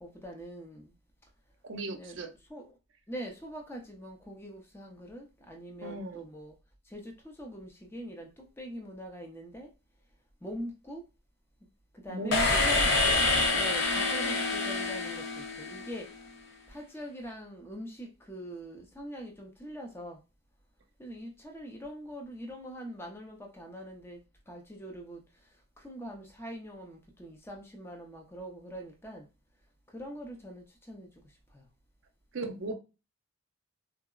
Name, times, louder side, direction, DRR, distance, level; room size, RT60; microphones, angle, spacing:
voice 1, 0.0-0.9 2.0-2.1 2.5-2.7 3.1-6.5 6.9-9.7 10.4-11.0 11.9-16.1 16.7-20.2 21.0-24.2 24.5-25.2 25.8-29.3 29.9-31.1 31.5-31.6, equal, 10° left, 1 dB, 0.5 m, -43 dB
voice 2, 1.6-2.3 5.8-6.3 12.1-12.7 32.3-32.7, right 2 dB, 55° right, 5 dB, 0.5 m, -36 dB
sound 1, 12.3-16.1, left 3 dB, 55° left, 0.6 m, -27 dB
3.6 x 2.0 x 2.3 m, 0.30 s
head